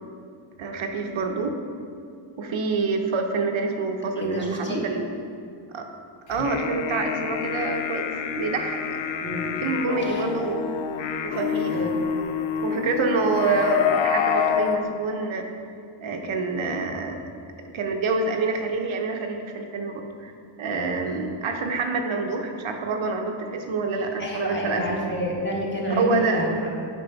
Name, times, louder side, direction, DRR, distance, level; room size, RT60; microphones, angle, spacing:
voice 1, 0.6-1.5 2.4-5.1 5.7-5.9 6.3-8.1 8.4-9.0 9.6-10.7 11.2-11.9 12.6-15.7 16.0-17.2 17.7-20.3 20.6-24.8 25.9-26.4, right 3 dB, 75° right, 3 dB, 0.8 m, -27 dB
voice 2, 4.2-4.8 9.2-9.4 10.0-10.2 11.7-11.9 24.2-26.5, equal, 25° left, -3 dB, 1.4 m, -28 dB
sound 1, 6.3-14.8, left 7 dB, 75° left, 0.6 m, -27 dB
8.3 x 5.5 x 3.9 m, 2.4 s
wide cardioid pair, 130°, 47 cm